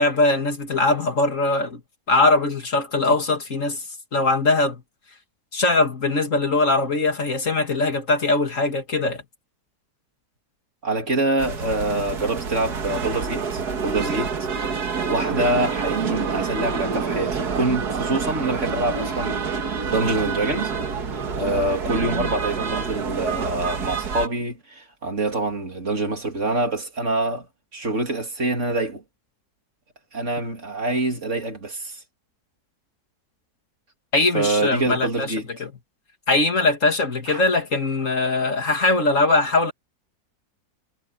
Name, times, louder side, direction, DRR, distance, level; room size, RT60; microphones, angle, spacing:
voice 1, 0.0-1.8 2.1-3.8 4.1-4.8 5.5-9.2 34.1-35.3 35.6-35.7 36.3-39.7, left 2 dB, 50° left, 2.6 m, -21 dB
voice 2, 10.8-20.7 21.3-29.0 30.1-32.0 34.3-35.5 37.3-37.5, right 2 dB, 45° right, 3.1 m, -25 dB
sound 1, 11.4-24.3, right 5 dB, 75° right, 2.2 m, -27 dB
omnidirectional pair, 1.7 m